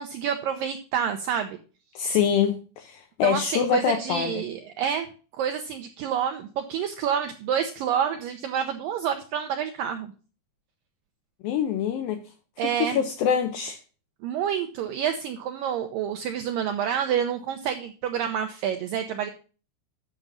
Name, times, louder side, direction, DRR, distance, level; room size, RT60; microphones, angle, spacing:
voice 1, 0.0-1.6 3.2-5.1 5.4-10.1 12.6-13.0 14.2-19.3, right 8 dB, 85° right, 1.9 m, -28 dB
voice 2, 2.0-4.4 11.4-12.2 12.8-13.8, left 8 dB, 80° left, 2.1 m, -25 dB
9.2 x 6.1 x 5.4 m
omnidirectional pair, 4.9 m